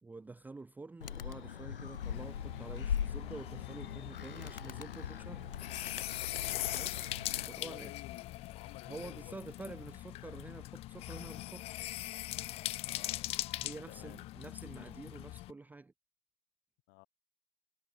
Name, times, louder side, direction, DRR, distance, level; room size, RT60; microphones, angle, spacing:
voice 1, 0.0-5.5 6.7-7.9 8.9-11.9 13.6-15.9, right 3 dB, 5° right, 1.1 m, -48 dB
Animal, 1.0-7.5, left 8 dB, 70° left, 0.7 m, -40 dB
sound 1, 1.0-8.6, left 13 dB, 55° left, 6.3 m, -61 dB
sound 2, 2.0-15.5, left 17 dB, 20° left, 0.6 m, -41 dB
voice 2, 6.6-7.0 7.4-9.3 10.2-10.4 12.8-13.3 13.7-14.2 16.9-17.1, left 33 dB, 35° left, 3.5 m, -54 dB
figure-of-eight pair, 100°, 29 cm